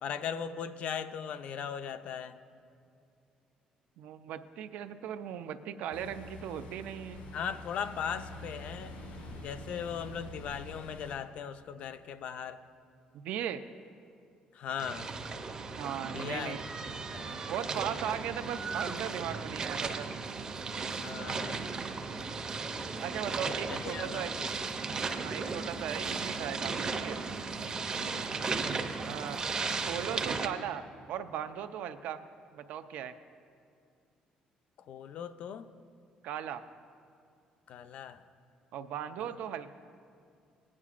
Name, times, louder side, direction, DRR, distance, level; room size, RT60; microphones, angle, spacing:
voice 1, 0.0-2.4 7.3-9.0 9.4-12.6 14.5-15.1 16.1-16.6 17.1-17.4 21.0-21.6 23.7-24.7 28.0-28.3 34.9-35.7 37.7-38.2 39.2-39.4, left 7 dB, 55° left, 11 dB, 0.4 m, -38 dB
voice 2, 4.0-7.2 13.2-13.6 15.8-16.6 17.5-20.1 23.0-24.3 25.2-27.2 29.1-29.4 29.8-32.2 32.5-33.2 36.2-36.6 38.7-39.7, right 9 dB, 80° right, 10 dB, 0.5 m, -38 dB
Ocean, 5.9-11.2, left 1 dB, 85° left, 1.6 m, -46 dB
sound 1, 14.8-30.5, right 4 dB, 30° right, 0.6 m, -36 dB
18.0 x 9.6 x 2.4 m, 2.4 s
cardioid pair, 150°, 3 cm